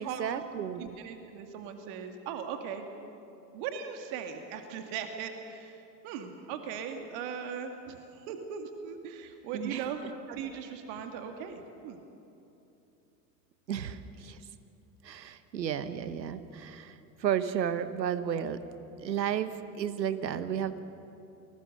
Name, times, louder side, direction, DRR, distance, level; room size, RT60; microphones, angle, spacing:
voice 1, 0.0-1.0 9.5-9.9 13.7-14.4 15.0-18.6 19.0-20.8, right 9 dB, 85° right, 13 dB, 1.2 m, -33 dB
voice 2, 0.8-2.9 3.5-10.0 10.3-12.0, right 7 dB, 60° right, 6 dB, 2.3 m, -39 dB
28.5 x 20.5 x 6.5 m, 2.9 s
hypercardioid pair, 70°, 49 cm